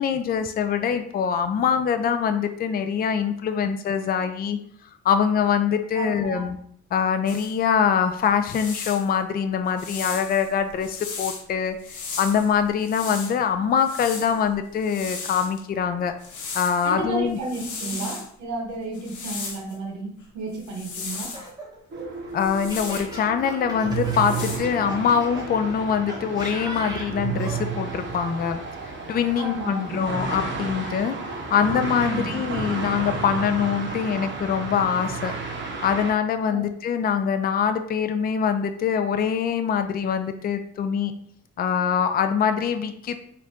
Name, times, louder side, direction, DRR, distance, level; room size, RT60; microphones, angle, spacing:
voice 1, 0.0-4.6 5.0-6.6 6.9-11.8 12.2-16.1 16.5-17.4 22.3-31.2 31.5-35.4 35.8-41.1 41.6-43.2, left 7 dB, 30° left, 8 dB, 0.4 m, -24 dB
voice 2, 5.9-6.5 16.8-21.3 29.4-30.1 32.0-32.3 36.5-36.6, right 2 dB, 70° right, 1 dB, 0.8 m, -32 dB
sound 1, 7.3-7.5 8.2-9.1 9.8-11.4 11.8-13.3 13.8-15.6 16.2-16.9 17.3-18.3 18.9-19.7 20.6-21.5 22.4-23.2 23.9-24.6, left 4 dB, 75° left, 0.9 m, -36 dB
Laughter, 21.1-25.5 26.1-27.6, equal, 15° right, 1.2 m, -38 dB
sound 2, 21.9-36.1, right 4 dB, 40° right, 0.9 m, -32 dB
4.0 x 2.5 x 3.4 m, 0.64 s
cardioid pair, 90°, 30 cm